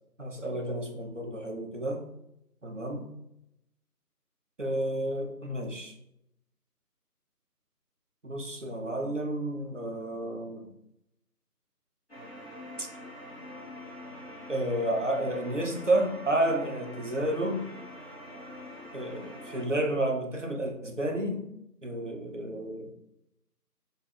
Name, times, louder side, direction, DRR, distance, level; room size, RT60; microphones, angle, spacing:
voice 1, 0.2-2.1 2.6-3.1 4.6-5.9 8.2-10.7 12.8-12.9 14.5-17.7 18.9-21.4 21.8-22.9, right 1 dB, 50° right, 2 dB, 0.5 m, -31 dB
sound 1, 12.1-19.6, left 1 dB, 35° left, 1.0 m, -44 dB
4.6 x 2.3 x 2.3 m, 0.82 s
figure-of-eight pair, 170°, 48 cm